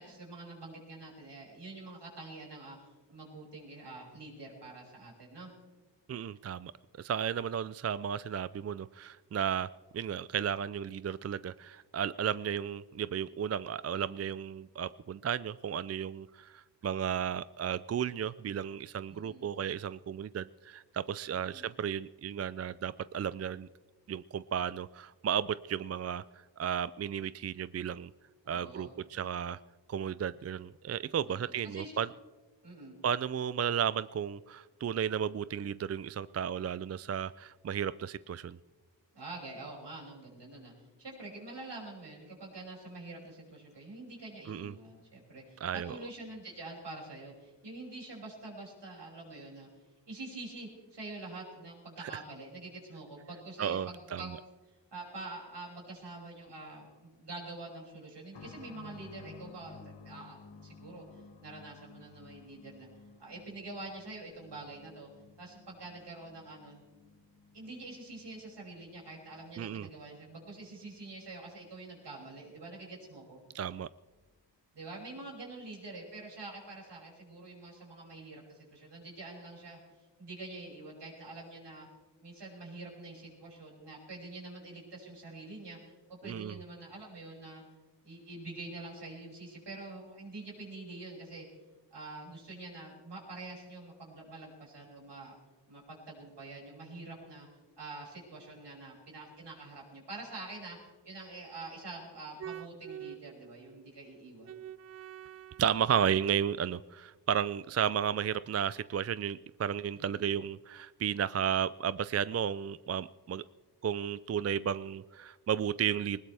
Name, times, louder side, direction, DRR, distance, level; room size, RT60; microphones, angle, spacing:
voice 1, 0.0-5.5 19.1-19.5 21.3-21.7 28.4-28.9 31.2-31.9 32.6-32.9 39.1-40.7 41.0-49.7 50.1-54.3 54.9-62.9 63.2-65.1 65.4-66.8 67.5-73.4 74.7-79.8 80.2-81.9 82.2-87.6 88.0-91.5 91.9-95.3 95.7-97.5 97.8-104.6 109.9-110.3, right 2 dB, 65° right, -3 dB, 6.4 m, -46 dB
voice 2, 6.1-6.7 7.0-23.7 24.1-26.2 26.6-28.1 28.5-29.6 29.9-32.1 33.0-38.6 44.5-44.7 45.6-46.0 52.0-52.1 53.6-54.2 69.6-69.9 73.5-73.9 86.2-86.6 102.4-103.2 104.5-113.4 113.8-116.2, right 8 dB, 35° right, 16 dB, 0.4 m, -33 dB
sound 1, 58.3-72.8 73.0-73.1 74.1-74.2, left 5 dB, 70° left, 2.0 m, -56 dB
20.0 x 20.0 x 3.4 m, 1.3 s
cardioid pair, 70°, 44 cm